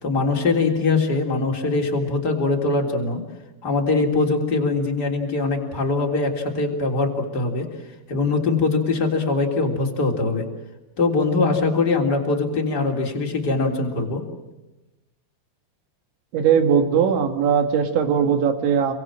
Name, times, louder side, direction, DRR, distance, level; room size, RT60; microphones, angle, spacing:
voice 1, 0.0-3.2 3.6-7.7 8.1-10.5 11.0-14.2, left 3 dB, 25° left, 1 dB, 3.2 m, -22 dB
voice 2, 16.3-18.9, right 7 dB, 70° right, 7 dB, 4.2 m, -19 dB
29.5 x 23.5 x 7.6 m, 1.0 s
omnidirectional pair, 5.5 m